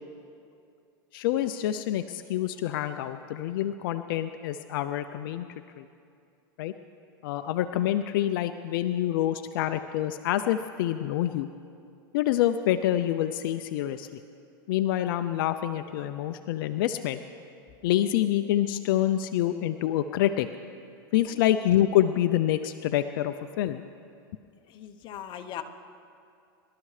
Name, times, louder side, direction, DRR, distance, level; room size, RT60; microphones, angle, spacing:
voice 1, 1.1-5.5 5.8-5.9 6.6-6.7 7.2-11.5 12.1-14.2 14.7-17.2 17.8-20.5 21.1-23.8, left 12 dB, 65° left, 9 dB, 0.5 m, -27 dB
voice 2, 24.7-25.6, left 10 dB, 40° left, 7 dB, 0.9 m, -39 dB
24.0 x 12.5 x 3.3 m, 2.4 s
supercardioid pair, 125°, 12 cm